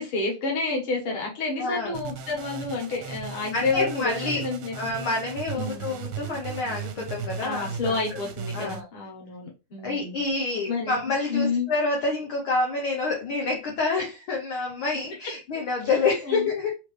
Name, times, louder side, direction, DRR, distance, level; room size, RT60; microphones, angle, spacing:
voice 1, 0.0-4.7 5.5-6.0 7.4-10.2 10.7-11.0 11.3-11.7 16.2-16.5, left 3 dB, 50° left, -1 dB, 2.0 m, -29 dB
voice 2, 1.6-2.0 3.5-4.4 4.7-8.2 8.5-8.9 9.8-16.7, left 3 dB, 70° left, 0 dB, 1.2 m, -28 dB
sound 1, 1.9-8.8, right 6 dB, 85° right, 2.0 m, -37 dB
4.8 x 3.1 x 3.2 m, 0.29 s
omnidirectional pair, 3.4 m